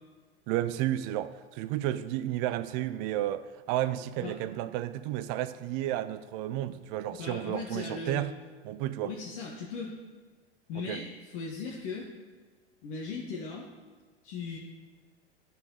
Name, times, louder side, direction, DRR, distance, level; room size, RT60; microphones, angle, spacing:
voice 1, 0.5-8.4 8.6-9.1 10.7-11.0, right 13 dB, 40° right, 0.4 m, -32 dB
voice 2, 7.2-8.3 9.0-9.9 10.7-12.1 12.8-13.7 14.2-14.6, left 4 dB, 50° left, 1.2 m, -38 dB
12.0 x 4.3 x 3.9 m
hypercardioid pair, 90°, 33 cm